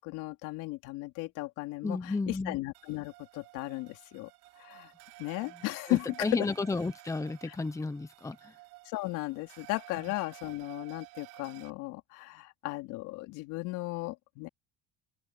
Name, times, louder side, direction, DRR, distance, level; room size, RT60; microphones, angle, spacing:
voice 1, 0.0-4.3 4.6-4.9 5.2-6.5 7.5-7.6 8.8-14.5, left 21 dB, 75° left, 4.1 m, -36 dB
voice 2, 1.8-2.6 5.9-8.5, left 3 dB, 10° left, 1.1 m, -33 dB
sound 1, 2.7-11.7, right 23 dB, 80° right, 4.3 m, -53 dB
open air
cardioid pair, 125°, 31 cm